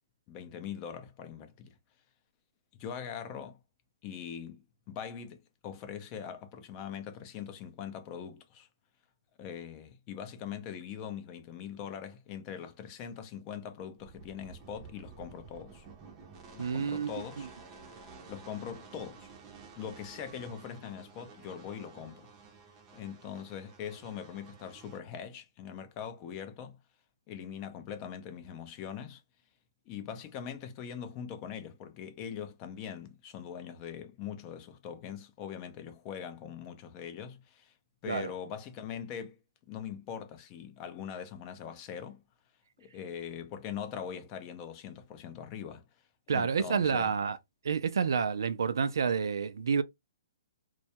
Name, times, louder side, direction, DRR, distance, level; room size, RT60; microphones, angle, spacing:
voice 1, 0.3-1.7 2.8-3.6 4.0-8.7 9.4-15.9 16.5-17.5 18.3-19.3 19.8-22.3 22.9-26.8 27.3-29.2 29.9-37.7 38.0-39.4 39.7-42.2 42.8-45.8 46.3-47.1, left 8 dB, 25° left, 0.4 m, -42 dB
sound 1, 14.0-25.0, right 5 dB, 25° right, 0.5 m, -52 dB
voice 2, 16.6-17.1 38.1-38.3 46.3-47.4 47.6-49.8, right 6 dB, 80° right, 0.3 m, -29 dB
2.2 x 2.0 x 2.7 m
hypercardioid pair, 150°, 2 cm